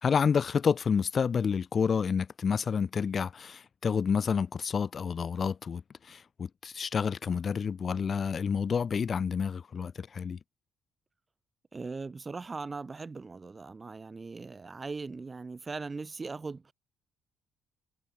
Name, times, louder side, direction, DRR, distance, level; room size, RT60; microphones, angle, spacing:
voice 1, 0.0-10.4, left 6 dB, 45° left, 1.6 m, -29 dB
voice 2, 11.7-16.7, right 4 dB, 30° right, 4.6 m, -39 dB
cardioid pair, 90°, 0 cm